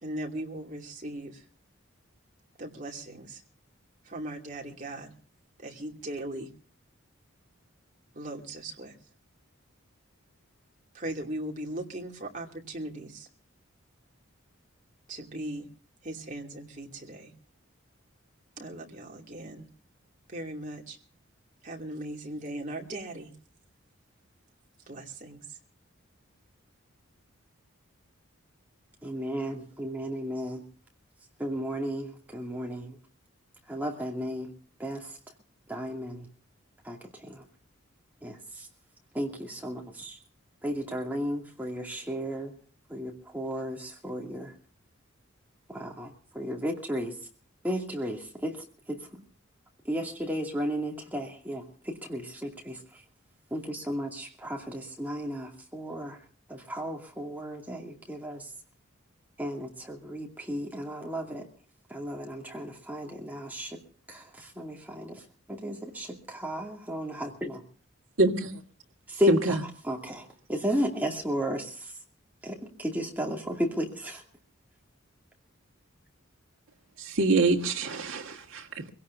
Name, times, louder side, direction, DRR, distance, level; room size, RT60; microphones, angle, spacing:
voice 1, 0.0-1.4 2.6-3.4 4.0-5.1 5.6-6.5 8.1-8.9 10.9-13.3 15.1-15.7 16.0-17.3 18.6-19.6 20.3-21.0 21.6-23.3 24.9-25.6, right 1 dB, 35° right, 2.6 m, -38 dB
voice 2, 29.0-30.6 31.4-33.0 33.7-34.5 34.8-35.2 35.7-36.3 36.8-37.4 38.2-38.7 39.1-40.2 40.6-42.5 42.9-44.5 45.7-47.2 47.6-49.2 49.8-53.0 53.5-56.2 56.5-58.5 59.4-61.5 61.9-63.8 64.1-67.6 69.1-69.6 69.8-71.9 72.4-74.2, equal, 10° right, 2.4 m, -34 dB
voice 3, 68.2-68.6 69.3-69.5 77.0-78.9, right 3 dB, 75° right, 1.8 m, -25 dB
24.5 x 17.0 x 2.6 m
head